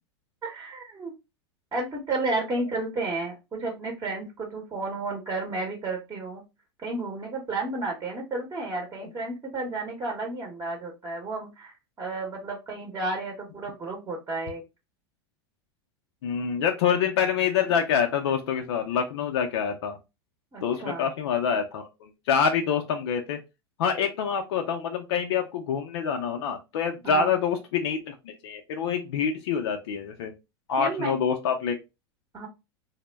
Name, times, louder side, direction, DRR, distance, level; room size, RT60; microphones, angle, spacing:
voice 1, 0.4-1.1 1.7-6.4 6.8-11.7 12.0-14.6 20.5-21.1 27.0-27.3 30.8-31.1 32.3-32.5, right 2 dB, 25° right, 1 dB, 0.8 m, -32 dB
voice 2, 16.2-20.0 20.6-23.4 23.8-30.3 30.7-31.8, left 7 dB, 70° left, 4 dB, 0.5 m, -26 dB
2.1 x 2.0 x 3.2 m, 0.25 s
hypercardioid pair, 100°, 14 cm